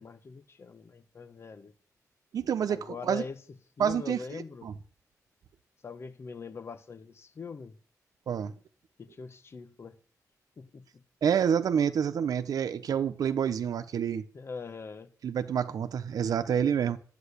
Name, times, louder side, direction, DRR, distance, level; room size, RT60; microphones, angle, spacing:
voice 1, 0.0-1.7 2.7-3.4 3.8-4.7 5.8-7.8 9.0-10.0 10.6-11.0 14.3-15.1, left 4 dB, 45° left, 1.5 m, -42 dB
voice 2, 2.3-3.2 3.8-4.2 4.6-4.7 8.3-8.5 11.2-14.3 15.2-17.0, right 8 dB, 75° right, 1.0 m, -28 dB
12.5 x 9.2 x 8.4 m
wide cardioid pair, 130°, 6 cm